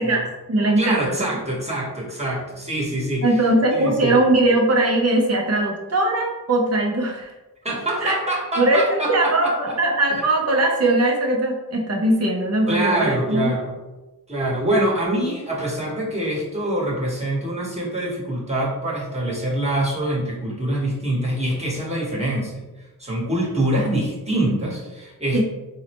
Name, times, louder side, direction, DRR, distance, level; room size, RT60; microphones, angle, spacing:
voice 1, 0.0-1.3 3.2-7.3 8.0-8.1 8.6-13.5 25.3-25.4, right 2 dB, 40° right, 0 dB, 0.6 m, -20 dB
voice 2, 0.8-3.4 3.7-4.2 7.6-9.5 12.7-13.7 14.3-22.6 23.0-25.4, right 1 dB, 15° right, -4 dB, 1.1 m, -25 dB
3.8 x 2.1 x 2.9 m, 1.1 s
wide cardioid pair, 40°, 37 cm